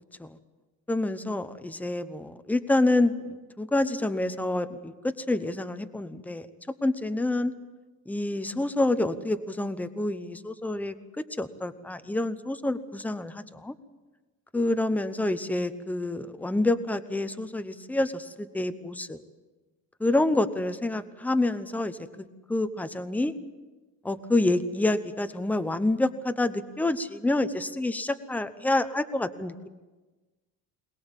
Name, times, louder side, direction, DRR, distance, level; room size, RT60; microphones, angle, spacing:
voice 1, 0.9-6.5 6.8-7.5 8.1-11.0 11.4-13.7 14.5-19.2 20.0-23.3 24.0-29.7, left 2 dB, 5° left, 11 dB, 0.9 m, -28 dB
22.5 x 20.0 x 7.3 m, 1.2 s
cardioid pair, 145°, 34 cm